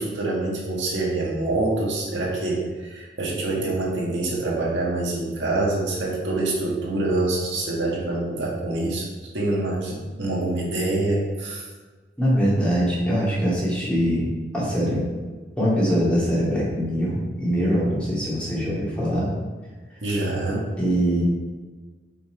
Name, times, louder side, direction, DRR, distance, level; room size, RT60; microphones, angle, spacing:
voice 1, 0.0-9.1 9.3-11.7 20.0-20.7, right 2 dB, 85° right, -4 dB, 1.9 m, -25 dB
voice 2, 12.2-14.2 14.5-15.0 15.6-19.3 20.8-21.2, equal, 5° left, -8 dB, 2.4 m, -22 dB
5.8 x 5.7 x 4.5 m, 1.4 s
head